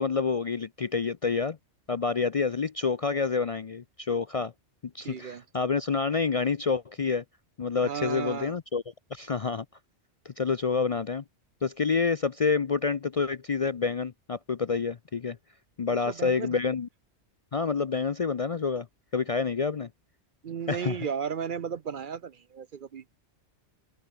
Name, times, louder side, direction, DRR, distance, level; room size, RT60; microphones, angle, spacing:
voice 1, 0.0-1.6 1.9-4.5 4.9-7.2 7.6-8.8 9.1-9.6 10.2-11.2 11.6-15.4 15.8-16.9 17.5-18.9 19.1-19.9 20.7-21.0, left 5 dB, 40° left, 0.5 m, -28 dB
voice 2, 5.0-5.4 7.8-8.5 16.1-16.6 20.4-23.0, right 7 dB, 55° right, 0.8 m, -34 dB
open air
omnidirectional pair, 1.2 m